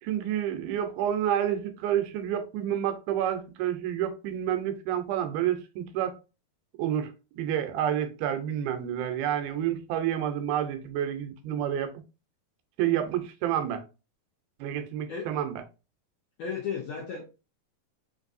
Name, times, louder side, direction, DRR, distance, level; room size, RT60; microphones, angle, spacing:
voice 1, 0.0-6.2 6.8-11.9 12.8-13.8 14.6-15.5, right 10 dB, 85° right, 2.6 m, -29 dB
voice 2, 16.4-17.2, left 6 dB, 75° left, 1.6 m, -34 dB
6.0 x 2.6 x 2.5 m
omnidirectional pair, 4.3 m